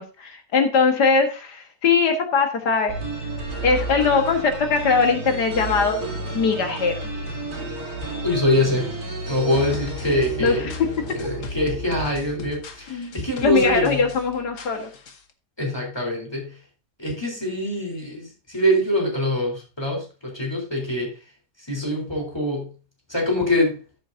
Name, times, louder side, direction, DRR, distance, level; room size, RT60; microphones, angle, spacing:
voice 1, 0.0-3.0 3.6-6.0 6.3-7.2 10.4-10.7 12.9-13.1 13.4-14.9, left 5 dB, 75° left, 4 dB, 2.1 m, -21 dB
sound 1, 2.9-12.7, right 1 dB, 65° right, 4.0 m, -32 dB
voice 2, 8.2-8.9 9.3-10.7 11.1-14.0 15.6-16.6 17.0-21.1 21.7-22.7 23.1-23.8, left 1 dB, 15° left, -1 dB, 3.9 m, -24 dB
sound 2, 9.5-15.3, left 4 dB, 50° left, 1.4 m, -40 dB
14.0 x 8.2 x 2.7 m, 0.33 s
omnidirectional pair, 1.8 m